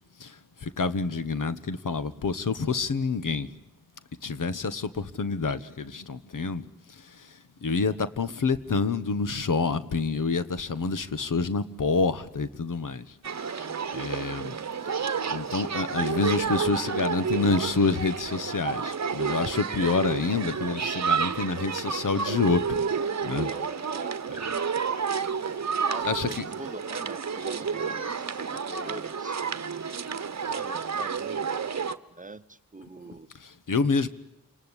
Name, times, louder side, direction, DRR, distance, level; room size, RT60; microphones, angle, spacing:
voice 1, 0.2-3.5 4.2-6.6 7.1-7.3 7.6-13.1 13.4-13.6 13.9-14.6 15.3-22.9 23.2-23.5 26.0-26.4 33.4-34.1, left 4 dB, 65° left, 1.3 m, -28 dB
sound 1, 13.2-32.0, right 6 dB, 50° right, 1.1 m, -30 dB
voice 2, 23.2-24.1 25.4-29.4 30.4-31.7 32.2-33.3, right 2 dB, 25° right, 1.0 m, -42 dB
28.5 x 19.5 x 10.0 m
cardioid pair, 55°, 34 cm